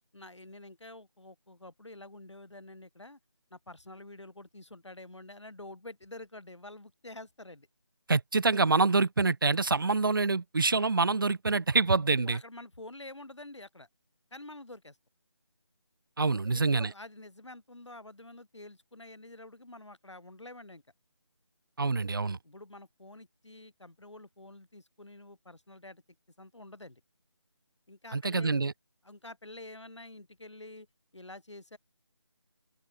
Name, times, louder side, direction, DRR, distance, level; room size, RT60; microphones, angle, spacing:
voice 1, 0.1-3.2 3.5-7.7 12.3-13.9 14.3-15.0 16.5-20.8 22.4-26.0 26.4-27.0 27.9-28.6 29.0-30.9 31.1-31.8, left 2 dB, 75° left, 4.7 m, -48 dB
voice 2, 8.1-12.4 16.2-16.9 21.8-22.4 28.1-28.7, right 3 dB, 50° right, 0.8 m, -26 dB
open air
figure-of-eight pair, 160°, 15 cm